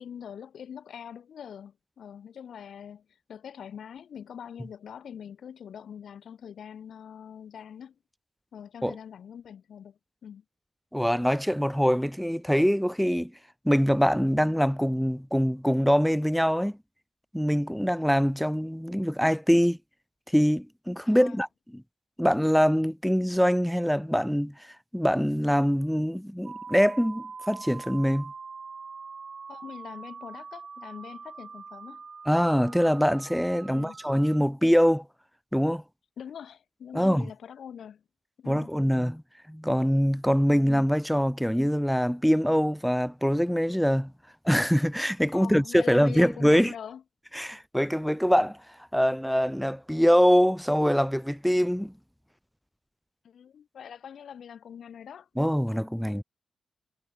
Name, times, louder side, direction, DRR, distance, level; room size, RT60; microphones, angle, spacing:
voice 1, 0.0-7.9 8.5-10.4 21.0-21.4 29.5-32.0 33.6-33.9 36.2-38.0 38.4-38.7 45.3-47.0 53.2-55.3, left 8 dB, 80° left, 1.2 m, -43 dB
voice 2, 10.9-13.3 13.7-16.8 17.3-19.8 20.3-21.5 21.7-21.8 22.2-24.5 24.9-28.3 32.3-35.0 35.5-35.8 36.9-37.3 38.5-39.2 39.5-44.1 44.4-46.7 47.3-48.6 48.9-51.9 55.4-56.2, equal, ahead, 0.4 m, -24 dB
sound 1, 26.4-34.4, right 5 dB, 50° right, 1.3 m, -43 dB
cardioid pair, 70°, 0 cm